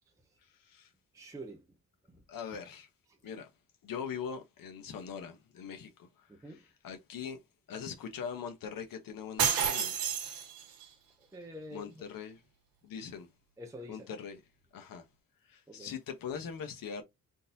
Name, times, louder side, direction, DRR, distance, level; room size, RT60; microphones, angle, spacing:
voice 1, 0.6-0.9 2.3-2.9 3.2-3.5 3.8-7.4 7.7-10.0 11.7-12.4 12.8-13.3 13.9-14.4 14.7-15.0 15.5-17.0, left 7 dB, 75° left, 0.9 m, -42 dB
voice 2, 1.1-1.6 6.3-6.6 11.3-11.9 13.6-14.1 15.7-15.9, equal, 10° right, 0.5 m, -46 dB
sound 1, 9.4-10.9, right 8 dB, 85° right, 1.2 m, -30 dB
3.7 x 2.7 x 2.5 m
wide cardioid pair, 155°, 34 cm